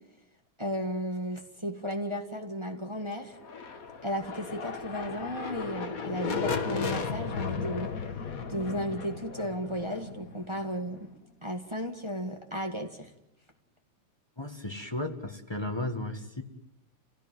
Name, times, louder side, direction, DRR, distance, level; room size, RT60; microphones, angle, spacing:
voice 1, 0.6-3.4 4.0-7.9 8.5-11.1 11.4-13.1, equal, 15° right, 4 dB, 1.2 m, -34 dB
sound 1, 3.3-11.1, left 5 dB, 40° left, 1.5 m, -35 dB
voice 2, 14.4-16.4, left 2 dB, 15° left, 4 dB, 0.9 m, -34 dB
28.5 x 16.5 x 9.3 m, 0.92 s
omnidirectional pair, 3.3 m